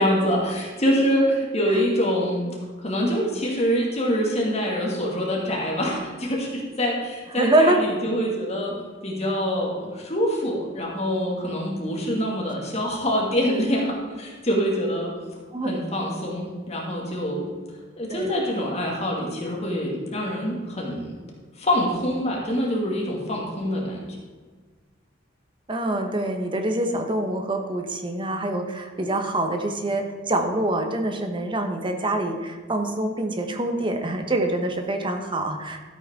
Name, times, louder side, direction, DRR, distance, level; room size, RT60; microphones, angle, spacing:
voice 1, 0.0-2.5 2.8-8.7 9.0-15.1 15.6-17.4 18.0-21.2 21.6-24.2, equal, 35° left, -2 dB, 2.3 m, -25 dB
voice 2, 7.4-7.8 15.5-15.7 18.1-18.3 25.7-35.8, right 1 dB, 25° right, 4 dB, 1.1 m, -25 dB
13.5 x 8.4 x 3.8 m, 1.5 s
head